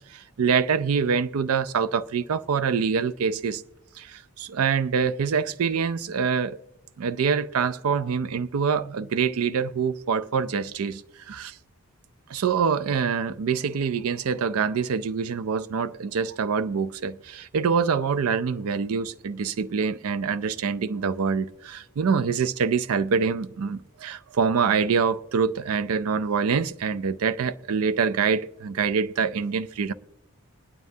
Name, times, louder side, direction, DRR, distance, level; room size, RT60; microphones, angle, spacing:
voice 1, 0.1-3.6 4.0-6.6 7.0-11.6 12.3-29.9, right 6 dB, 80° right, 0.4 m, -25 dB
21.5 x 9.4 x 2.7 m
head